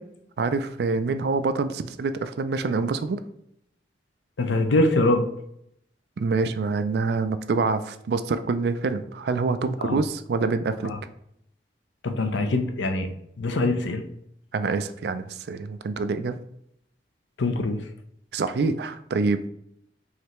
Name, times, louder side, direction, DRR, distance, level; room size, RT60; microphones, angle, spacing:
voice 1, 0.4-3.2 6.2-10.9 14.5-16.4 18.3-19.5, right 4 dB, 60° right, 11 dB, 0.3 m, -26 dB
voice 2, 4.4-5.2 9.8-10.0 12.0-13.1 13.4-14.0 17.4-17.8, left 2 dB, 90° left, 6 dB, 0.6 m, -23 dB
4.9 x 3.2 x 3.0 m, 0.74 s
head